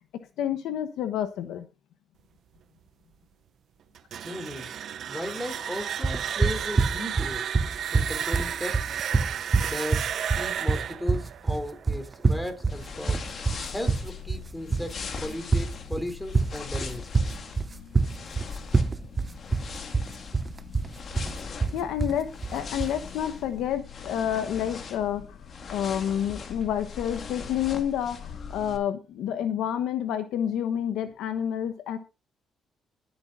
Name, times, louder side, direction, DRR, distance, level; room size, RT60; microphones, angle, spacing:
voice 1, 0.4-1.7 21.7-25.4 25.7-32.0, left 9 dB, 85° left, 9 dB, 1.2 m, -29 dB
sound 1, 4.0-12.8, right 9 dB, 65° right, 0.6 m, -33 dB
voice 2, 4.2-4.7 5.1-7.4 7.9-8.9 9.6-13.2 13.7-17.1, left 1 dB, 10° left, 6 dB, 3.4 m, -36 dB
sound 2, 6.0-23.0, right 4 dB, 25° right, 0.7 m, -26 dB
sound 3, 12.7-28.8, left 5 dB, 50° left, 2.2 m, -40 dB
21.5 x 8.0 x 2.6 m, 0.27 s
cardioid pair, 90°, 0 cm